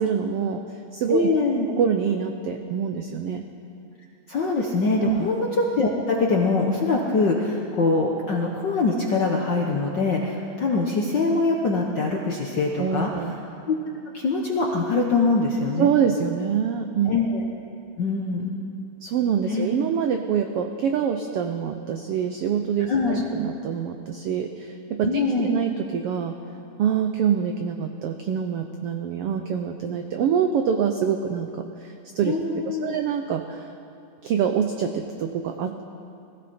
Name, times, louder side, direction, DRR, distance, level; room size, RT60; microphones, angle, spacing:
voice 1, 0.0-1.3 1.7-3.4 5.0-5.3 12.8-13.4 15.8-17.2 19.0-26.4 26.8-32.3 32.7-33.7 34.2-35.8, right 7 dB, 90° right, 6 dB, 1.3 m, -25 dB
voice 2, 1.1-1.7 4.3-13.1 13.7-13.8 14.1-15.9 17.0-17.5 18.0-18.5 19.5-19.7 22.9-23.2 25.0-25.5 32.3-33.0, left 3 dB, 70° left, -1 dB, 1.0 m, -23 dB
21.0 x 15.5 x 4.3 m, 2.6 s
omnidirectional pair, 3.5 m